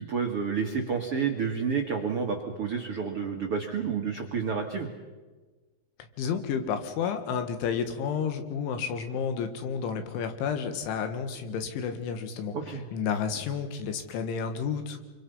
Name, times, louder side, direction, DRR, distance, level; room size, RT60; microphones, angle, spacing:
voice 1, 0.0-4.9 12.5-12.8, right 6 dB, 75° right, 2 dB, 1.3 m, -30 dB
voice 2, 6.2-15.0, left 6 dB, 75° left, 8 dB, 4.0 m, -31 dB
27.0 x 25.0 x 5.6 m, 1.3 s
omnidirectional pair, 5.6 m